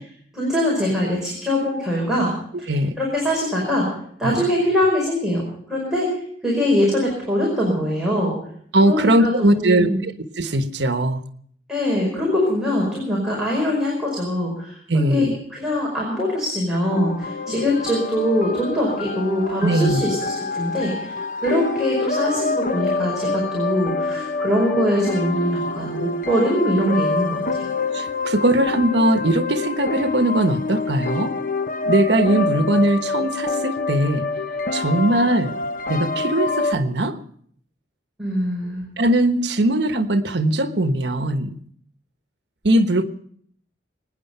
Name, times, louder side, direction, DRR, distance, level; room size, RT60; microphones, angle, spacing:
voice 1, 0.3-2.3 2.6-3.9 4.2-5.4 5.7-8.3 8.9-10.0 11.7-21.1 21.4-27.7 38.2-38.8, equal, 5° right, -5 dB, 5.2 m, -23 dB
voice 2, 8.7-10.1 10.4-11.2 14.9-15.3 19.6-20.0 27.9-31.3 31.8-34.3 34.7-35.6 35.9-37.2 39.0-41.5 42.6-43.0, right 1 dB, 75° right, 9 dB, 1.2 m, -20 dB
sound 1, 16.8-36.7, left 3 dB, 50° left, 0.9 m, -26 dB
24.0 x 9.9 x 5.6 m, 0.63 s
head